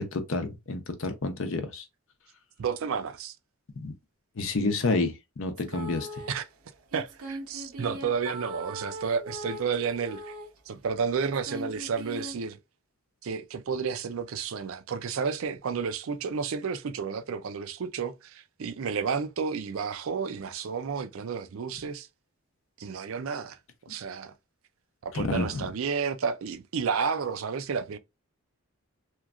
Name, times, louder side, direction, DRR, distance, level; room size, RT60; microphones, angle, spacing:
voice 1, 0.0-1.8 3.8-3.9 4.4-6.2 25.1-25.7, left 3 dB, 60° left, 0.6 m, -29 dB
voice 2, 2.6-3.4 6.3-6.5 6.9-10.3 10.7-12.6 13.2-22.1 22.8-24.3 25.0-28.0, right 6 dB, 65° right, 0.4 m, -31 dB
sound 1, 5.6-6.3 6.9-10.6 11.2-12.3, equal, 85° right, 0.8 m, -40 dB
3.0 x 2.3 x 2.4 m
head